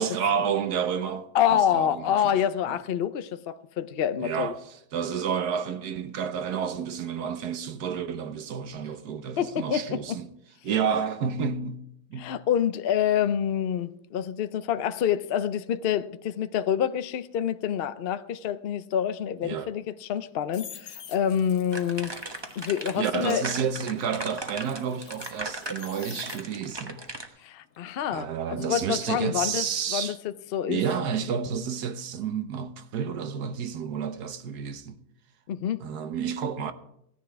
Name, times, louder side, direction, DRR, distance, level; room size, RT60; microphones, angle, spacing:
voice 1, 0.0-2.4 2.7-2.8 4.2-4.5 4.9-10.3 10.6-11.8 12.1-12.4 19.4-19.7 23.0-27.0 28.1-30.2 30.7-35.0 35.8-36.7, right 7 dB, 70° right, 1.4 m, -30 dB
voice 2, 1.3-4.5 9.4-10.2 12.2-22.1 22.6-23.4 27.4-30.8 35.5-35.9, left 9 dB, 75° left, 0.5 m, -27 dB
sound 1, 20.1-26.8 27.2-30.1 30.3-30.7, left 8 dB, 55° left, 1.1 m, -48 dB
sound 2, 21.7-27.3, right 2 dB, 20° right, 0.9 m, -37 dB
16.0 x 10.5 x 4.7 m
omnidirectional pair, 1.8 m